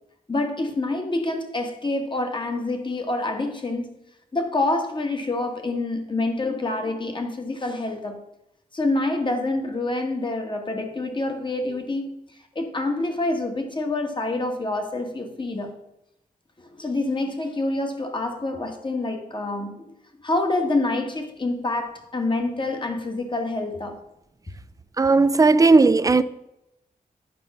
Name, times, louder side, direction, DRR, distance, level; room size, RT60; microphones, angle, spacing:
voice 1, 0.3-4.0 4.3-8.2 8.7-12.1 12.5-15.8 16.6-19.9 20.2-24.0, left 2 dB, 30° left, 1.4 m, -27 dB
voice 2, 25.0-26.2, right 3 dB, 25° right, 0.4 m, -16 dB
9.0 x 5.4 x 5.9 m
wide cardioid pair, 110°, 15 cm